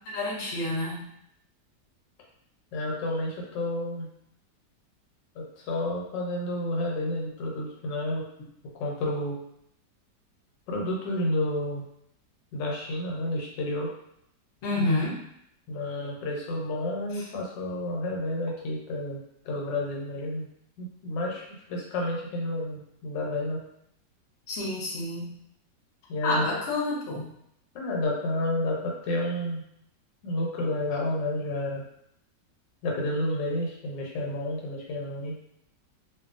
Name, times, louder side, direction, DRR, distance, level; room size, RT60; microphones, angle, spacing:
voice 1, 0.1-1.1 14.6-15.2 17.1-17.2 24.5-25.3 26.2-27.3, left 2 dB, 55° left, -4 dB, 0.8 m, -29 dB
voice 2, 2.7-4.1 5.3-8.3 8.8-9.4 10.7-11.8 12.5-13.9 15.7-20.5 20.8-23.6 26.1-26.6 27.7-29.6 30.2-31.9 32.8-35.3, left 1 dB, 90° left, -2 dB, 1.3 m, -30 dB
2.6 x 2.6 x 2.4 m, 0.75 s
omnidirectional pair, 1.9 m